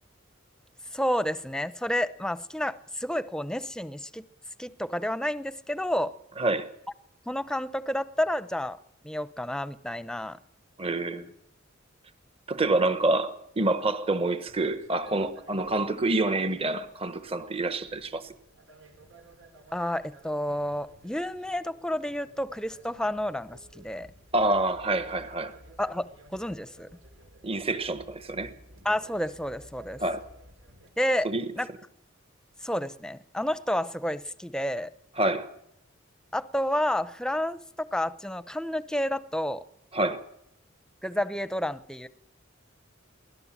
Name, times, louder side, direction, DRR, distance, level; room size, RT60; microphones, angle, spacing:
voice 1, 0.9-4.2 4.6-6.2 7.3-8.8 9.0-10.4 19.7-24.1 25.8-26.9 28.8-30.0 31.0-31.3 31.5-31.7 32.6-34.9 36.3-39.6 41.0-42.1, left 1 dB, 5° left, 0.7 m, -30 dB
voice 2, 6.4-6.7 10.8-11.3 12.5-18.3 24.3-25.6 27.4-28.5 30.0-30.3 31.2-31.4 35.2-35.5 39.9-40.2, right 2 dB, 30° right, 1.1 m, -27 dB
sound 1, 14.4-30.9, right 1 dB, 90° right, 4.4 m, -54 dB
23.5 x 17.0 x 7.3 m
head